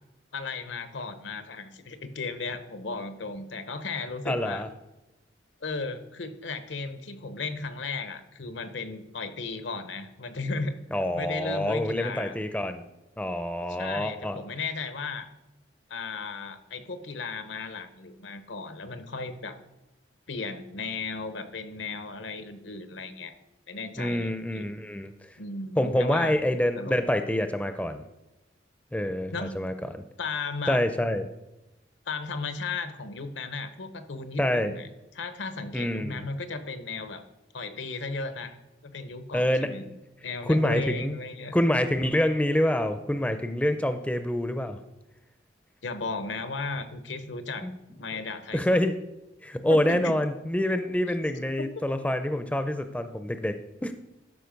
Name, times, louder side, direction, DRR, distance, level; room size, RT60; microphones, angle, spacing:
voice 1, 0.3-4.6 5.6-10.8 11.1-12.4 13.7-15.3 15.9-19.6 20.3-23.3 23.7-24.6 25.4-26.3 26.8-27.0 29.3-29.5 30.2-30.8 32.1-34.9 35.1-37.2 37.5-38.6 38.8-39.9 40.2-41.6 45.8-47.6 48.0-48.9 49.7-50.2 51.4-51.8, left 4 dB, 80° left, 9 dB, 0.9 m, -35 dB
voice 2, 4.3-4.7 10.9-12.8 13.2-14.4 24.0-25.1 25.8-28.0 28.9-29.7 30.7-31.3 34.4-34.7 35.7-36.2 39.3-40.0 40.5-41.2 41.5-44.8 47.6-47.7 48.5-49.0 49.4-53.9, left 1 dB, 5° left, 8 dB, 0.4 m, -26 dB
12.5 x 5.0 x 5.2 m, 0.97 s
head